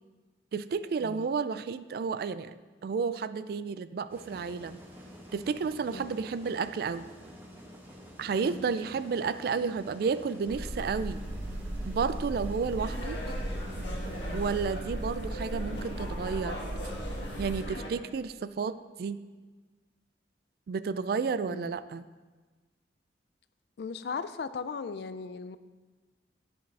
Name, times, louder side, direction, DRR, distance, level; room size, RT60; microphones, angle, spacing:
voice 1, 0.5-2.5 2.8-4.8 5.3-7.0 8.2-11.2 11.8-13.2 14.3-16.6 17.4-19.2 20.7-22.0, right 5 dB, 55° right, 14 dB, 0.3 m, -31 dB
sound 1, 4.1-14.3, equal, 10° right, 1.1 m, -49 dB
voice 2, 5.9-6.2 8.3-8.6 21.5-21.7 23.8-25.6, left 5 dB, 60° left, 13 dB, 0.4 m, -38 dB
sound 2, 10.5-17.6, right 1 dB, 85° right, 0.9 m, -36 dB
sound 3, 12.8-17.9, left 1 dB, 85° left, 1.8 m, -41 dB
10.5 x 7.7 x 3.3 m, 1.3 s
head